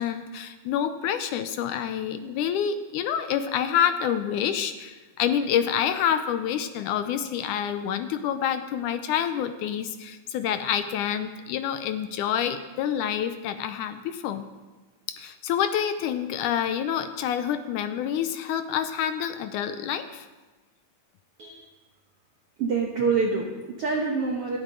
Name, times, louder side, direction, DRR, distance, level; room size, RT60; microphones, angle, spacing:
voice 1, 0.0-14.5 15.2-20.3, left 9 dB, 80° left, 9 dB, 1.8 m, -27 dB
voice 2, 22.6-24.6, right 4 dB, 65° right, 0 dB, 1.5 m, -26 dB
27.0 x 9.0 x 3.8 m, 1.2 s
omnidirectional pair, 4.2 m